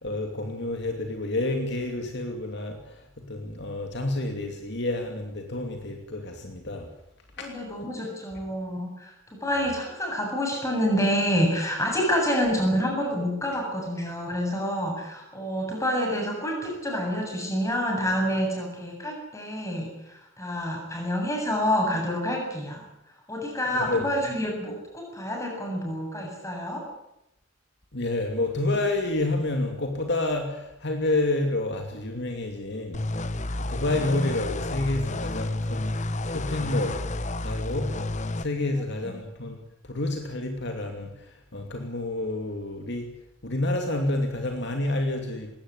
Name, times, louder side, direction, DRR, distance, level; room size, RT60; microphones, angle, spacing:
voice 1, 0.0-6.9 7.4-7.5 23.7-24.1 27.9-33.0 33.7-37.0 37.4-37.9 38.4-39.6 39.8-43.1 43.4-45.5, left 2 dB, 55° left, 4 dB, 2.8 m, -29 dB
voice 2, 7.4-22.8 23.3-26.9 38.7-39.1, equal, 15° left, 1 dB, 7.9 m, -28 dB
sound 1, 32.9-38.5, left 2 dB, 35° left, 1.0 m, -30 dB
20.5 x 17.5 x 9.9 m, 0.84 s
head